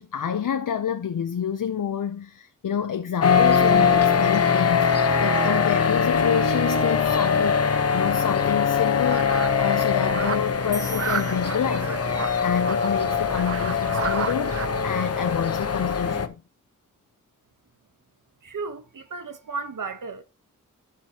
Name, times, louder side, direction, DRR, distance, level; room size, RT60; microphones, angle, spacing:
voice 1, 0.0-16.4, left 8 dB, 75° left, 0.7 m, -28 dB
sound 1, 3.2-16.3, left 6 dB, 50° left, 0.9 m, -22 dB
sound 2, 9.0-14.7, right 6 dB, 45° right, 0.6 m, -33 dB
sound 3, 10.7-12.3, left 1 dB, 10° left, 1.0 m, -41 dB
voice 2, 18.4-20.2, right 4 dB, 80° right, 1.0 m, -34 dB
12.5 x 6.1 x 2.9 m
wide cardioid pair, 75°, 32 cm